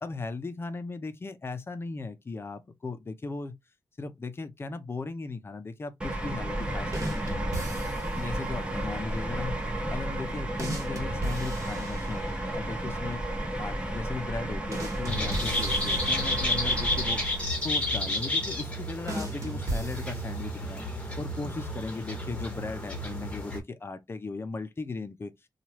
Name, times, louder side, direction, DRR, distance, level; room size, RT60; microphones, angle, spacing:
voice 1, 0.0-3.6 4.0-7.2 8.2-9.6 9.9-13.2 13.6-17.2 17.6-20.8 21.2-25.3, left 3 dB, 35° left, 0.6 m, -37 dB
sound 1, 6.0-17.6, right 1 dB, 15° right, 0.8 m, -33 dB
sound 2, 6.9-8.3 10.6-12.6 14.7-16.9 19.1-20.7, right 1 dB, 45° right, 1.4 m, -37 dB
sound 3, 15.1-23.6, left 1 dB, 15° left, 1.0 m, -31 dB
3.1 x 2.4 x 2.9 m
wide cardioid pair, 120°, 7 cm